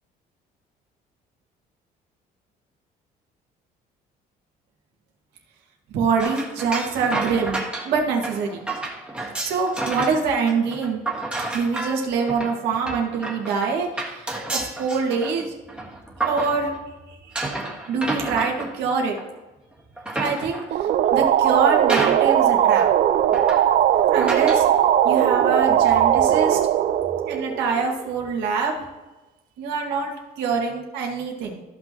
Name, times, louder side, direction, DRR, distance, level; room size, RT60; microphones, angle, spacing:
voice 1, 5.9-8.6 9.4-11.0 11.5-15.5 16.2-16.8 17.2-17.5 17.9-19.2 20.2-20.6 21.1-22.9 24.1-24.6 25.0-26.6 27.3-28.8 29.6-30.1 30.4-31.6, right 5 dB, 85° right, 1 dB, 1.9 m, -25 dB
sound 1, 6.2-10.2 10.5-16.9 17.3-19.4 19.8-20.8 21.4-21.5 21.9-22.5 22.8-22.9 23.3-23.8 24.2-24.7, right 2 dB, 5° right, 1.7 m, -30 dB
sound 2, 20.7-28.1, right 10 dB, 55° right, 0.5 m, -19 dB
14.0 x 6.0 x 3.0 m, 1.1 s
cardioid pair, 110°, 17 cm